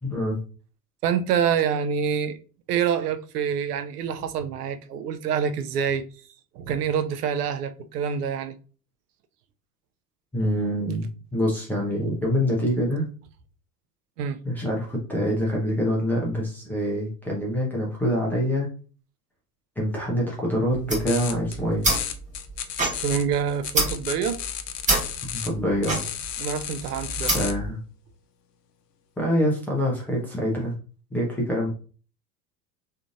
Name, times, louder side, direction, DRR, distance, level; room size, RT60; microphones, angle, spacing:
voice 1, 0.0-0.4 10.3-11.1 11.3-13.1 14.4-18.7 19.8-21.9 25.3-26.0 27.3-27.8 29.2-30.7 31.1-31.7, equal, 5° left, 0.3 m, -25 dB
voice 2, 1.0-2.4 2.7-6.1 6.5-8.6 14.2-14.4 23.0-24.4 26.4-27.4, right 7 dB, 65° right, 0.6 m, -26 dB
sound 1, 20.7-27.7, right 2 dB, 15° right, 1.0 m, -28 dB
sound 2, 21.1-21.6 21.8-25.5 25.8-27.5, left 10 dB, 75° left, 0.6 m, -33 dB
3.6 x 2.6 x 2.4 m
figure-of-eight pair, 80°, 50 cm